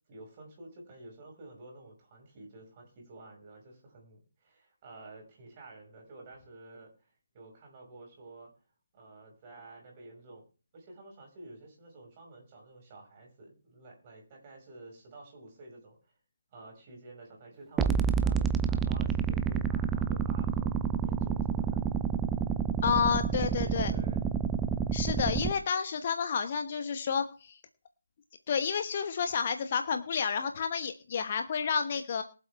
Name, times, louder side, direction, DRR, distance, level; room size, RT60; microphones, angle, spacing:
voice 1, 0.1-7.1 7.3-8.5 8.9-10.4 10.7-16.1 16.5-21.8 23.3-24.3, right 2 dB, 25° right, 1 dB, 5.8 m, -51 dB
sound 1, 17.8-25.5, right 7 dB, 10° right, 0.6 m, -29 dB
voice 2, 22.8-23.9 24.9-27.6 28.5-32.2, left 6 dB, 35° left, 8 dB, 1.1 m, -30 dB
23.0 x 7.7 x 3.5 m, 0.36 s
figure-of-eight pair, 150°, 0 cm